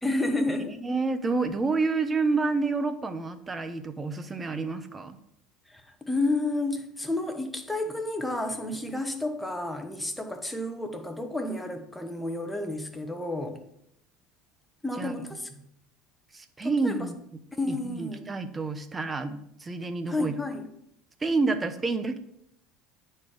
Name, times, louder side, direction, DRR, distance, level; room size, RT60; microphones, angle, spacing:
voice 1, 0.0-0.8 5.7-13.6 14.8-15.5 16.6-17.1 17.5-18.3 20.1-20.7, left 2 dB, 5° left, 6 dB, 1.3 m, -31 dB
voice 2, 0.7-5.2 15.0-15.1 16.3-17.2 17.7-20.4 21.2-22.2, right 3 dB, 20° right, 10 dB, 0.9 m, -29 dB
9.4 x 4.5 x 5.0 m, 0.75 s
supercardioid pair, 90°, 0 cm